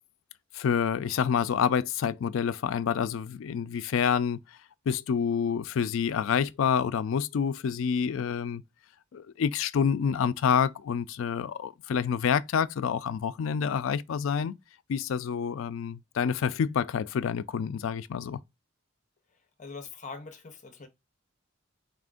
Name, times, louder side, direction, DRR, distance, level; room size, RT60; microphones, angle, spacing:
voice 1, 0.5-4.4 4.9-8.6 9.1-14.6 14.9-18.4, left 7 dB, 70° left, 0.3 m, -28 dB
voice 2, 19.6-20.9, left 4 dB, 35° left, 0.6 m, -42 dB
4.2 x 2.5 x 3.5 m
head